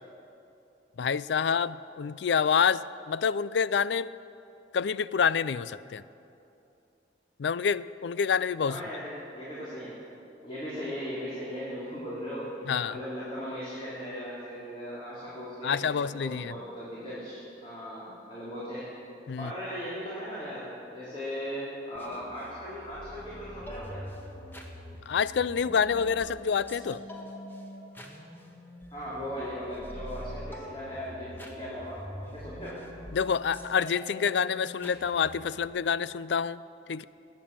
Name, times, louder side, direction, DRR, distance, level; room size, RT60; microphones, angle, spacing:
voice 1, 1.0-4.1 4.7-6.0 7.4-8.8 12.7-13.0 15.6-16.5 19.3-19.5 25.1-27.0 33.1-36.6 36.9-37.0, left 6 dB, 75° left, 18 dB, 0.4 m, -27 dB
voice 2, 8.6-9.9 10.4-18.9 19.4-24.0 28.9-32.8, equal, 30° left, -9 dB, 3.4 m, -38 dB
sound 1, 22.0-35.7, equal, 10° left, 1.4 m, -44 dB
21.0 x 9.0 x 7.5 m, 2.8 s
head